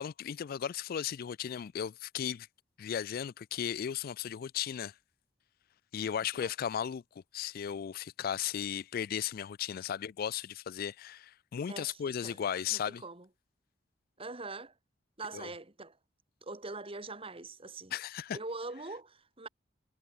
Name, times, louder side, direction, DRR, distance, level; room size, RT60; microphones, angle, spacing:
voice 1, 0.0-2.5 2.8-4.9 5.9-7.0 7.3-13.0 15.3-15.5 17.9-18.4, left 8 dB, 50° left, 0.3 m, -36 dB
voice 2, 11.7-12.4 12.7-13.3 14.2-14.7 15.2-16.0 16.4-17.9 18.3-19.5, right 3 dB, 30° right, 2.5 m, -43 dB
head